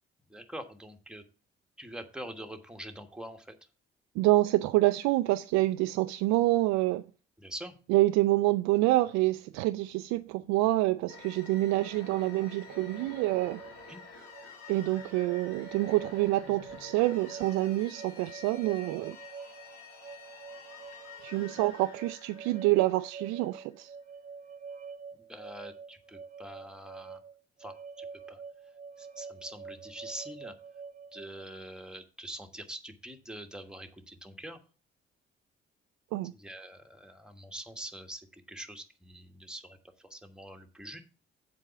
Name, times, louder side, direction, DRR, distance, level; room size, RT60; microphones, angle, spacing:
voice 1, 0.3-1.2 1.8-3.5 7.4-7.7 13.9-14.0 25.3-27.2 27.6-28.4 29.0-30.5 31.1-34.6 36.4-41.0, right 1 dB, 5° right, 1.4 m, -44 dB
voice 2, 4.2-7.0 7.9-13.6 14.7-19.2 21.2-23.9 36.1-36.3, right 18 dB, 70° right, 0.4 m, -27 dB
sound 1, 11.1-23.6, left 4 dB, 85° left, 1.5 m, -50 dB
sound 2, 12.7-31.4, right 5 dB, 25° right, 0.6 m, -47 dB
7.4 x 4.7 x 6.8 m
hypercardioid pair, 45°, 29 cm